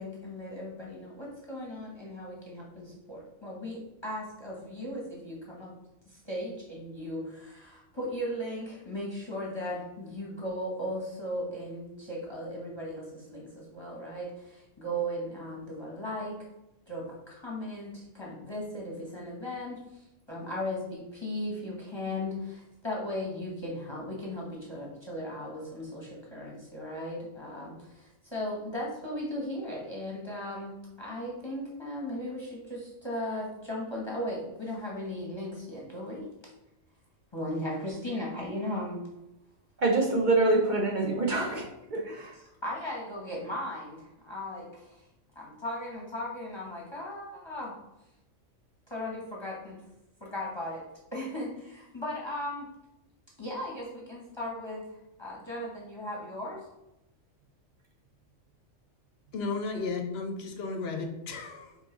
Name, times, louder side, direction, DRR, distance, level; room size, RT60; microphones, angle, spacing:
voice 1, 0.0-5.7 6.1-16.4 16.9-36.3 37.3-39.1 41.3-41.4 42.3-45.0 45.3-47.7 48.9-49.8 50.2-50.8 51.1-52.7 53.4-56.6, left 1 dB, 25° left, -5 dB, 0.9 m, -37 dB
voice 2, 39.8-41.6 41.9-42.3, right 2 dB, 45° right, 0 dB, 0.7 m, -25 dB
voice 3, 59.3-61.8, left 4 dB, 60° left, 4 dB, 0.8 m, -34 dB
5.5 x 2.6 x 3.8 m, 0.91 s
omnidirectional pair, 1.3 m